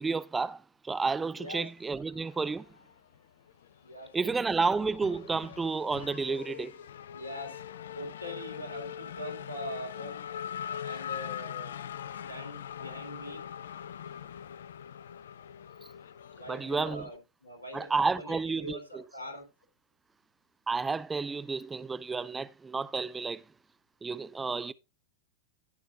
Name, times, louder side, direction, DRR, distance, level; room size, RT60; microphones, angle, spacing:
voice 1, 0.0-2.7 4.1-6.8 16.5-17.1 17.7-19.1 20.7-23.4 24.0-24.7, right 4 dB, 15° right, 0.5 m, -31 dB
Race car auto racing / Accelerating revving vroom, 2.2-3.2 3.5-17.2, left 9 dB, 65° left, 0.4 m, -42 dB
voice 2, 3.8-4.3 7.1-7.6 7.9-10.3 10.8-13.4 16.3-19.5, equal, 80° left, 3.3 m, -43 dB
16.5 x 6.2 x 2.4 m
figure-of-eight pair, 90°, 0 cm